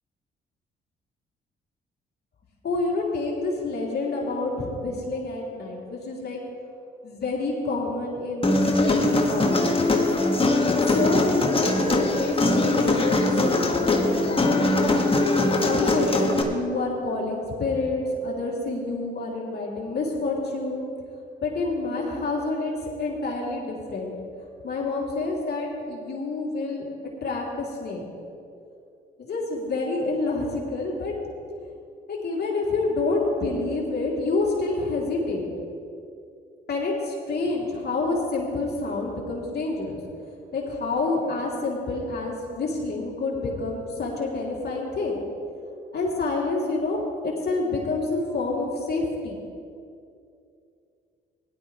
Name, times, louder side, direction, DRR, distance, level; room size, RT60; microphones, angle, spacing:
voice 1, 2.6-6.4 7.0-9.8 10.7-14.6 15.6-20.8 21.4-24.1 24.6-26.9 27.2-28.0 29.2-31.1 32.1-35.4 36.7-40.0 40.5-45.2 45.9-49.4, left 3 dB, 55° left, -3 dB, 3.0 m, -28 dB
Human voice, 8.4-16.4, left 2 dB, 30° left, 1.7 m, -21 dB
17.0 x 11.5 x 3.3 m, 2.5 s
supercardioid pair, 60°, 20 cm